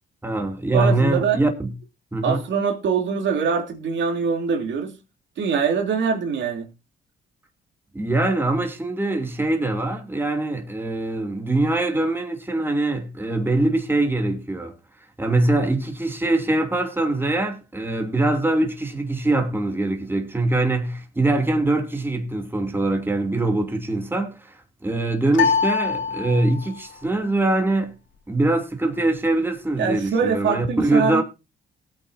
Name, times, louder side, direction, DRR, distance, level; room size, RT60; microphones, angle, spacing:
voice 1, 0.2-1.7 2.1-2.4 7.9-14.7 15.2-27.9 28.3-31.2, right 2 dB, 10° right, 2.7 m, -23 dB
voice 2, 0.7-1.4 2.2-4.9 5.4-6.7 29.8-31.2, right 6 dB, 70° right, 3.1 m, -23 dB
sound 1, 25.3-26.8, left 5 dB, 80° left, 1.9 m, -23 dB
19.0 x 8.8 x 2.7 m
cardioid pair, 90°, 20 cm